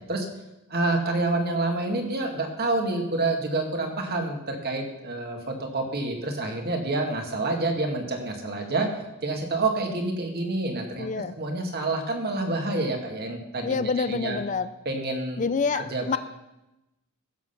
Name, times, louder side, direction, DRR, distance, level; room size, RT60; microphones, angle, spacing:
voice 1, 0.7-8.9 9.2-14.4 14.9-15.5 15.7-16.2, right 2 dB, 45° right, 3 dB, 2.0 m, -28 dB
voice 2, 11.0-11.3 13.6-14.7 15.4-16.2, left 5 dB, 35° left, 13 dB, 0.4 m, -27 dB
15.5 x 7.5 x 5.8 m, 0.96 s
head